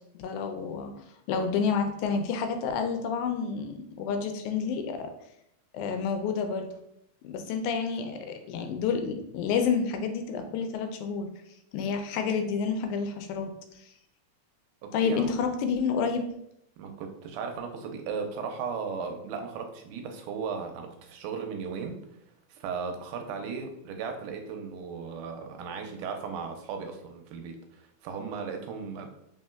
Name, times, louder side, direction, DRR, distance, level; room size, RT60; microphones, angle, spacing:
voice 1, 0.1-0.9 1.3-5.1 5.7-6.7 7.2-11.3 11.7-13.9 14.9-16.2, left 6 dB, 80° left, 6 dB, 2.0 m, -29 dB
voice 2, 14.8-15.3 16.8-22.0 22.5-29.1, right 5 dB, 90° right, 5 dB, 2.1 m, -36 dB
4.3 x 3.7 x 2.3 m, 0.76 s
omnidirectional pair, 3.5 m